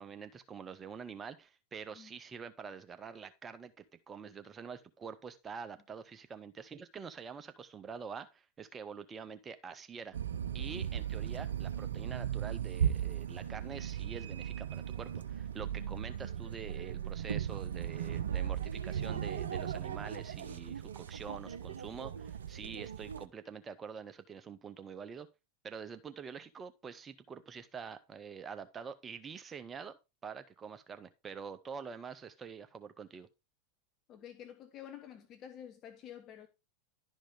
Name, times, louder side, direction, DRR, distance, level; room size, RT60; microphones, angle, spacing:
voice 1, 0.0-10.2 10.5-25.3 25.6-30.0 30.2-33.3, right 6 dB, 20° right, 0.7 m, -46 dB
sound 1, 10.1-23.3, right 9 dB, 70° right, 0.5 m, -37 dB
voice 2, 34.1-36.5, left 10 dB, 35° left, 0.8 m, -49 dB
11.5 x 5.1 x 3.6 m
figure-of-eight pair, 85°, 0 cm